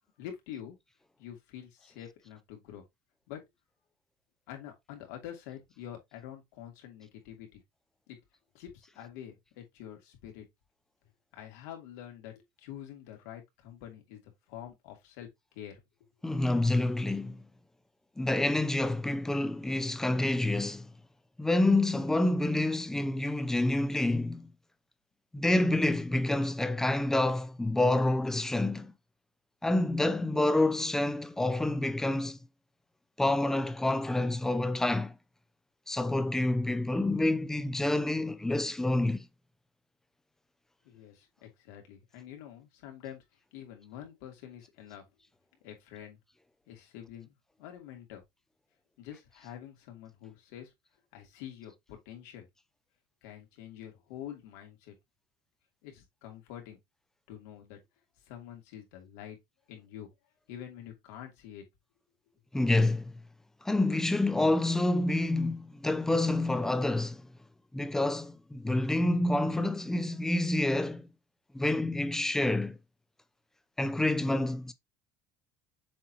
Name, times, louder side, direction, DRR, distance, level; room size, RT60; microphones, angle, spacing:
voice 1, 0.2-0.8 1.2-2.8 3.3-3.4 4.5-7.6 8.1-8.2 8.5-10.4 11.3-15.3 15.5-15.8 40.8-43.2 43.5-45.0 45.6-46.2 46.7-48.2 49.0-50.7 51.1-52.5 53.2-54.9 55.8-56.8 57.3-57.8 58.3-59.4 59.7-60.1 60.5-61.6, left 10 dB, 90° left, 2.7 m, -46 dB
voice 2, 16.2-17.4 18.2-20.9 21.4-24.5 25.3-28.9 29.6-32.4 33.2-35.2 35.9-39.3 62.5-63.2 63.6-67.3 67.7-71.1 71.5-72.8 73.8-74.7, left 2 dB, 5° left, 0.4 m, -28 dB
7.1 x 4.7 x 2.9 m
cardioid pair, 160°, 9 cm